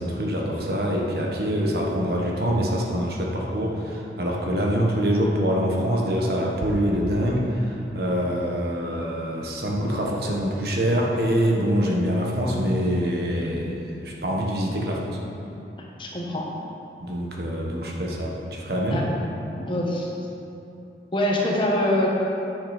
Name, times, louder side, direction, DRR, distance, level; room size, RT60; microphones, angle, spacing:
voice 1, 0.0-15.2 17.0-19.0, equal, 60° right, -2 dB, 1.3 m, -25 dB
voice 2, 15.7-16.5 18.9-19.0 19.6-20.1 21.1-22.1, left 1 dB, 30° left, -2 dB, 1.2 m, -24 dB
9.9 x 6.7 x 5.1 m, 2.8 s
head